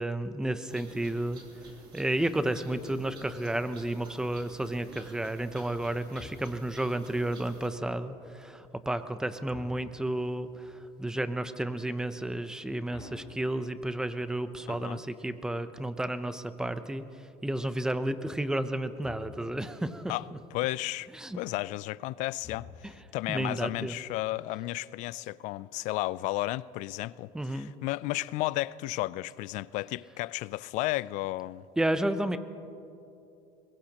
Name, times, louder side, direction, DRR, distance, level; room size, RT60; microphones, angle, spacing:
voice 1, 0.0-1.4 1.9-17.0 17.4-20.1 21.1-21.4 22.8-22.9 23.3-24.0 27.3-27.7 31.8-32.4, right 1 dB, 5° right, 0.7 m, -32 dB
sound 1, 0.7-7.7, right 2 dB, 35° right, 3.0 m, -51 dB
sound 2, 6.2-6.9 9.5-10.3 12.9-14.1 19.0-19.7 22.4-23.2, left 5 dB, 30° left, 1.7 m, -50 dB
voice 2, 14.7-15.0 20.1-20.3 20.5-21.1 21.4-22.7 23.1-31.6, left 18 dB, 65° left, 0.4 m, -33 dB
23.0 x 21.5 x 3.0 m
cardioid pair, 135°, 14 cm